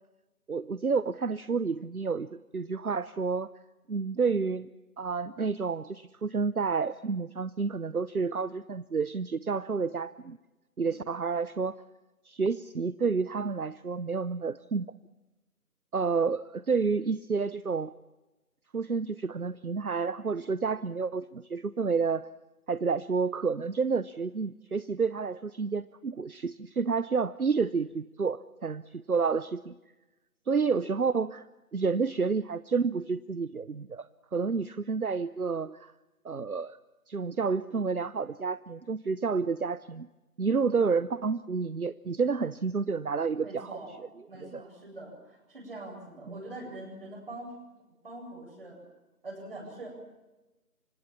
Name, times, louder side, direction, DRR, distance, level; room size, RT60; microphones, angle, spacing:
voice 1, 0.5-3.5 3.9-4.7 5.0-10.4 10.8-11.8 12.3-14.8 15.9-17.9 18.7-22.2 22.7-29.7 30.5-31.4 31.7-35.9 36.2-36.8 37.1-40.1 40.4-43.7 44.4-44.6 46.3-46.4, right 5 dB, 70° right, 16 dB, 0.9 m, -30 dB
voice 2, 43.4-44.0 44.3-47.8 48.0-48.8 49.2-49.9, right 2 dB, 35° right, 2 dB, 8.0 m, -43 dB
28.0 x 25.5 x 7.4 m, 1.1 s
figure-of-eight pair, 160°, 46 cm